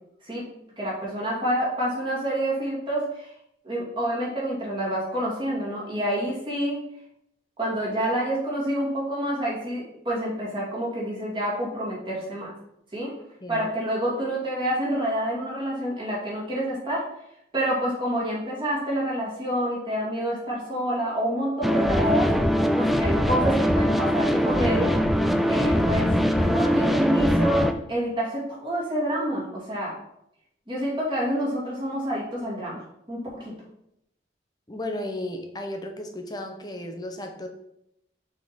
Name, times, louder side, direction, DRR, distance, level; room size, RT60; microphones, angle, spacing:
voice 1, 0.8-3.3 3.6-6.8 7.6-12.5 12.9-13.1 13.5-17.1 17.5-22.3 22.7-24.9 25.5-30.0 30.7-33.6, equal, 25° right, -5 dB, 2.3 m, -28 dB
voice 2, 13.4-13.7 34.7-37.5, left 1 dB, 20° left, 4 dB, 0.8 m, -34 dB
sound 1, 21.6-27.7, equal, ahead, 0.3 m, -22 dB
6.2 x 3.8 x 5.1 m, 0.79 s
head